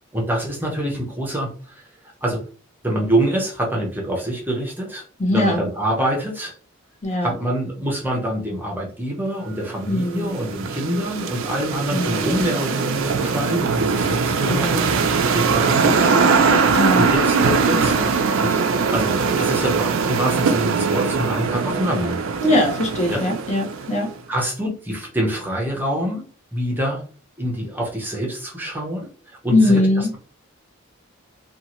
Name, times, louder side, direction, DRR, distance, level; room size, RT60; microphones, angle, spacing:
voice 1, 0.1-1.9 2.2-2.4 2.8-5.0 5.3-6.6 7.2-16.4 16.9-22.2 23.1-23.2 24.3-27.0 27.4-29.8, right 1 dB, 10° right, -1 dB, 0.7 m, -25 dB
voice 2, 5.2-5.7 7.0-7.3 9.9-10.3 11.9-12.5 14.2-14.9 16.7-17.1 22.4-24.1 29.5-30.1, left 1 dB, 35° left, 0 dB, 0.8 m, -21 dB
sound 1, 9.6-24.1, right 5 dB, 65° right, 0.4 m, -21 dB
2.7 x 2.4 x 2.9 m, 0.39 s
head